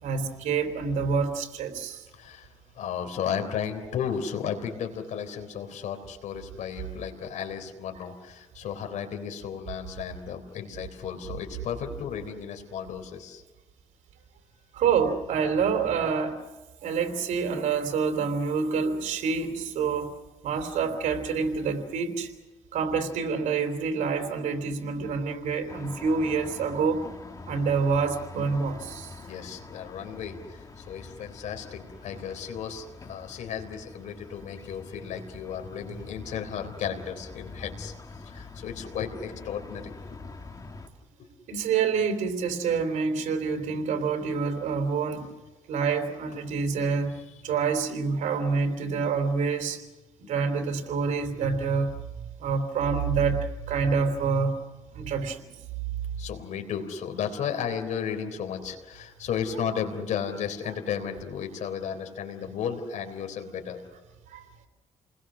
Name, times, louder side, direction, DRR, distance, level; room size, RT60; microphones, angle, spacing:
voice 1, 0.0-2.0 14.7-16.4 16.8-20.2 20.4-22.3 22.7-27.0 27.5-29.3 41.5-45.3 45.7-47.1 47.4-49.8 50.2-51.9 52.4-54.6 54.9-55.5 64.3-64.4, right 5 dB, 85° right, 6 dB, 3.3 m, -27 dB
voice 2, 2.1-13.4 29.2-37.9 38.2-39.9 56.2-63.8, left 7 dB, 80° left, 5 dB, 3.7 m, -34 dB
sound 1, 25.7-40.9, left 3 dB, 30° left, 2.8 m, -44 dB
29.5 x 20.5 x 6.3 m, 1.1 s
cardioid pair, 85°, 12 cm